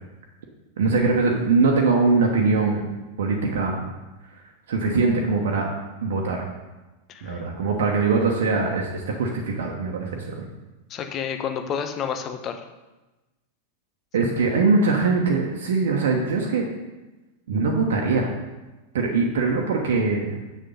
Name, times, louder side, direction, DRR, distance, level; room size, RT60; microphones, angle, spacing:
voice 1, 0.8-2.9 3.2-3.8 4.7-5.7 6.0-6.4 7.2-10.5 14.1-16.6 17.5-18.3 18.9-20.3, right 4 dB, 60° right, 0 dB, 1.2 m, -22 dB
voice 2, 7.1-7.5 10.9-12.6, left 7 dB, 30° left, 6 dB, 1.0 m, -30 dB
7.4 x 6.8 x 5.4 m, 1.1 s
figure-of-eight pair, 90°, 0 cm